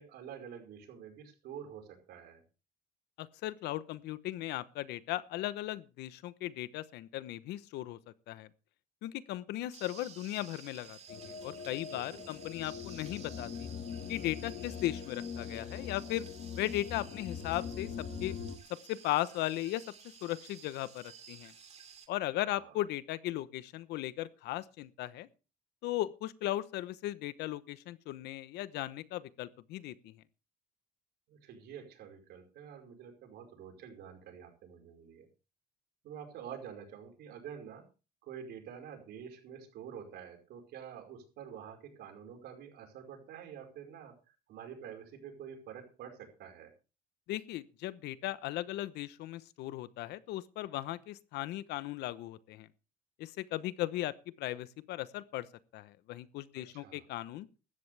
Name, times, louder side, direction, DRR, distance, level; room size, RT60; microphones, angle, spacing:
voice 1, 0.0-2.4 11.9-12.3 22.5-22.8 31.3-35.3 36.0-37.8 38.2-46.7 56.5-57.1, right 8 dB, 75° right, 5.0 m, -48 dB
voice 2, 3.2-8.0 8.3-8.5 9.0-13.7 14.1-16.3 16.5-17.9 18.2-18.4 18.9-19.8 20.2-21.5 22.1-25.3 25.8-30.1 47.3-52.7 53.2-55.5 55.7-57.5, left 15 dB, 85° left, 1.0 m, -37 dB
sound 1, 9.7-22.1, right 7 dB, 40° right, 2.6 m, -54 dB
sound 2, 11.1-18.6, left 7 dB, 55° left, 2.0 m, -42 dB
16.0 x 13.0 x 3.4 m
cardioid pair, 110°, 17 cm